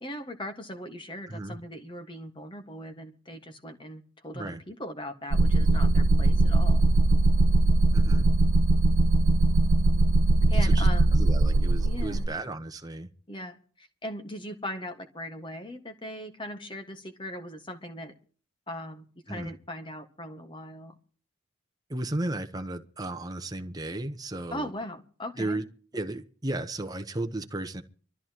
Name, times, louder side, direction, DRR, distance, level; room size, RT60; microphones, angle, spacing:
voice 1, 0.0-6.8 10.5-11.1 11.8-12.3 13.3-18.1 18.7-20.9 24.5-25.6, left 1 dB, 25° left, 1.6 m, -39 dB
sound 1, 5.3-12.3, right 2 dB, 75° right, 0.6 m, -21 dB
voice 2, 7.9-8.3 10.6-13.1 19.3-19.5 21.9-24.7 25.4-25.6 25.9-27.8, right 2 dB, 20° right, 1.0 m, -34 dB
24.0 x 13.5 x 3.0 m
head